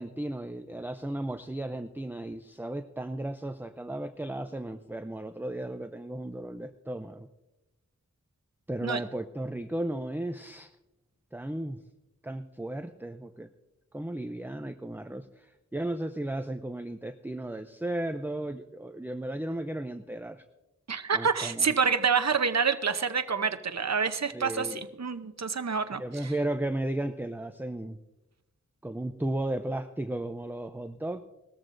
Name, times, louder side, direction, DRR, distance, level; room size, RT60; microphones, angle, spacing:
voice 1, 0.0-7.3 8.7-10.7 11.3-11.8 12.2-13.5 13.9-20.4 21.1-21.7 24.3-24.8 26.0-28.0 28.8-31.2, right 1 dB, 5° right, 8 dB, 0.5 m, -35 dB
voice 2, 20.9-26.3, right 5 dB, 60° right, 9 dB, 0.8 m, -27 dB
19.5 x 14.0 x 2.6 m, 0.98 s
wide cardioid pair, 55°, 30 cm